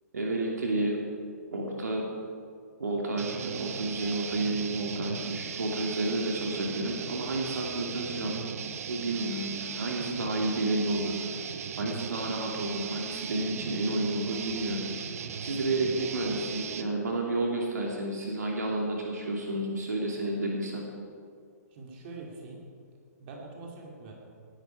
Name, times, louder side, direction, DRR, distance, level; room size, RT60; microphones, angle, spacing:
voice 1, 0.1-1.0 1.5-2.1 2.8-8.4 8.9-11.4 11.8-15.1 15.4-20.9, right 2 dB, 75° right, -1 dB, 2.7 m, -31 dB
sound 1, 3.2-16.9, right 7 dB, 60° right, 1.0 m, -38 dB
voice 2, 21.7-22.6 23.2-24.1, right 3 dB, 40° right, -1 dB, 3.2 m, -44 dB
18.5 x 11.5 x 4.9 m, 2.2 s
figure-of-eight pair, 125°, 9 cm